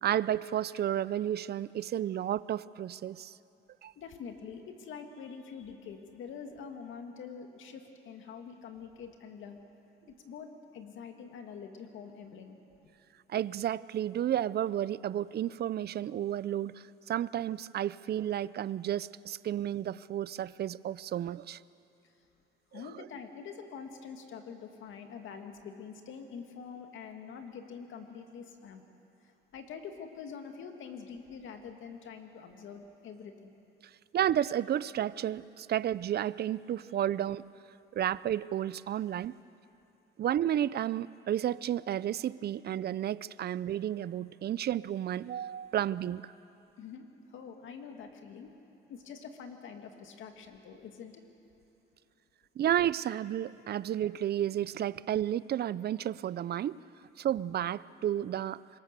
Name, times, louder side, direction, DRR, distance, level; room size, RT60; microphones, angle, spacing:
voice 1, 0.0-3.3 3.8-3.9 13.3-21.6 22.7-22.8 34.1-37.4 37.9-39.3 40.2-46.3 52.6-56.8 57.2-58.6, right 11 dB, 55° right, 19 dB, 0.5 m, -32 dB
voice 2, 4.0-9.6 10.1-12.6 22.0-22.1 22.7-28.8 29.2-33.5 46.8-48.5 48.9-51.2, left 6 dB, 75° left, 5 dB, 2.2 m, -45 dB
26.0 x 22.5 x 6.8 m, 2.8 s
cardioid pair, 90°, 20 cm